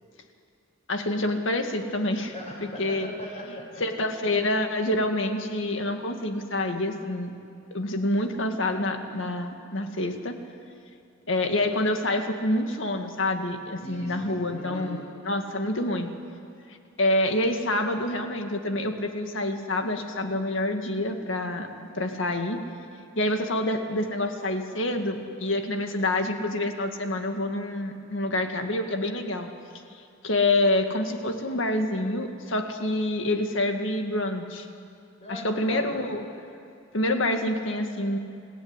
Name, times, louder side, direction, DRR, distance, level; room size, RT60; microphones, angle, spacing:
voice 1, 0.9-2.3 2.8-3.1 3.8-7.3 7.7-10.4 11.3-16.1 16.7-22.6 23.2-29.5 30.2-34.7 35.3-36.2 36.9-38.2, left 1 dB, 65° left, 5 dB, 2.1 m, -27 dB
voice 2, 2.3-3.8 13.8-15.1 35.2-36.0, equal, 35° left, -2 dB, 7.9 m, -39 dB
28.0 x 16.5 x 9.9 m, 2.5 s
head